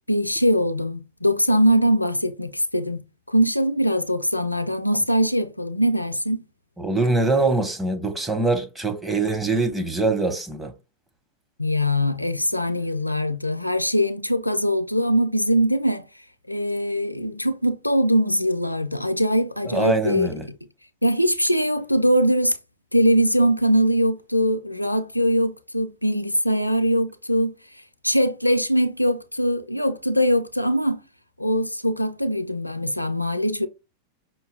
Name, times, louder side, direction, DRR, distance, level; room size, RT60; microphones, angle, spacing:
voice 1, 0.1-3.0 3.3-6.4 11.6-16.1 16.5-20.3 21.0-22.5 22.9-27.5 28.0-31.0 31.4-33.7, equal, 90° left, 0.4 m, -22 dB
voice 2, 6.8-10.7 19.6-20.5, right 3 dB, 10° right, 1.0 m, -23 dB
5.5 x 2.3 x 3.3 m
figure-of-eight pair, 90°, 0 cm